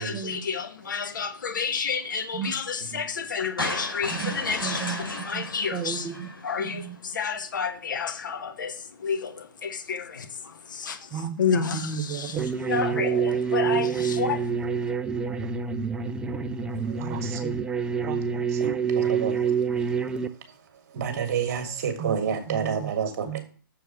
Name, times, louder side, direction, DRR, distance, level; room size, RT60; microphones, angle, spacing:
voice 1, 0.0-6.1 6.4-14.9, left 6 dB, 60° left, 1.3 m, -30 dB
sound 1, 3.6-6.8, left 2 dB, 85° left, 4.8 m, -34 dB
voice 2, 4.6-5.0 5.3-5.4 5.7-6.3 6.6-7.0 11.1-11.4 11.7-12.5 12.8-13.0 14.1-14.2 17.0-17.5 18.0-18.8 22.0-22.1 22.5-22.9 23.2-23.4, right 8 dB, 25° right, 0.9 m, -34 dB
sound 2, 12.4-20.3, right 6 dB, 5° right, 0.4 m, -27 dB
voice 3, 18.6-19.5 20.9-23.4, right 7 dB, 50° right, 1.8 m, -29 dB
7.0 x 4.6 x 6.9 m
figure-of-eight pair, 125°, 11 cm